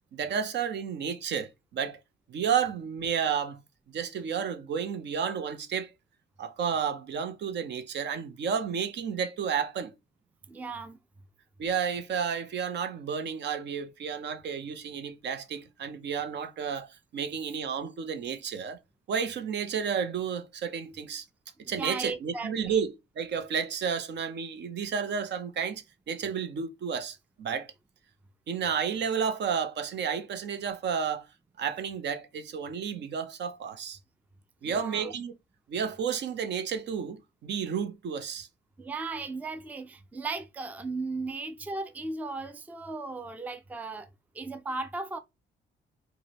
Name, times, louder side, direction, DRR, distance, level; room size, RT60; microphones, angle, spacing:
voice 1, 0.1-2.0 2.3-3.6 3.9-5.9 6.4-9.9 11.6-18.8 19.1-21.2 21.7-27.7 28.5-31.3 31.6-34.0 34.6-35.3 35.7-38.5, right 7 dB, 60° right, 0.6 m, -31 dB
voice 2, 10.5-11.0 21.6-22.8 34.6-35.1 38.8-44.1 44.3-45.2, right 3 dB, 10° right, 0.4 m, -36 dB
4.7 x 2.2 x 2.8 m
cardioid pair, 90°, 20 cm